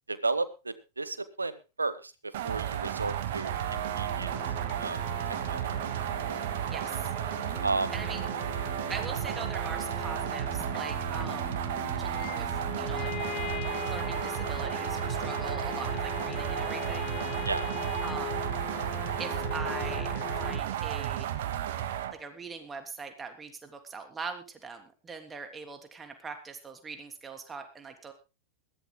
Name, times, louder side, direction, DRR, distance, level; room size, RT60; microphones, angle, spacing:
voice 1, 0.1-3.5 4.0-4.3 4.8-5.0 5.5-5.7 6.2-6.4 7.6-7.9 17.4-17.7, right 3 dB, 80° right, 14 dB, 1.4 m, -33 dB
sound 1, 2.3-22.1, right 11 dB, 55° right, 1.8 m, -33 dB
sound 2, 3.4-20.6, left 14 dB, 35° left, 0.7 m, -41 dB
voice 2, 6.7-7.1 7.9-8.3 8.9-11.6 12.0-13.1 13.8-17.4 18.0-18.4 19.2-21.3 22.1-28.1, right 4 dB, 15° right, 6 dB, 3.2 m, -42 dB
21.5 x 15.5 x 2.2 m, 0.29 s
figure-of-eight pair, 90°, 0 cm